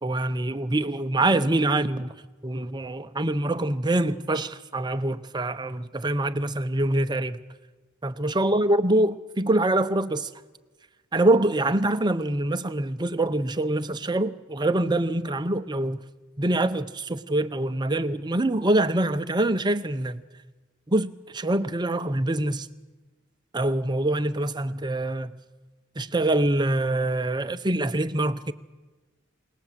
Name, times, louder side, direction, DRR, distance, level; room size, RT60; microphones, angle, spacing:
voice 1, 0.0-2.1 2.4-7.4 8.0-10.3 11.1-16.0 16.4-20.2 20.9-22.7 23.5-25.4 26.0-28.5, right 1 dB, 20° right, 0.8 m, -25 dB
29.0 x 19.0 x 7.5 m
head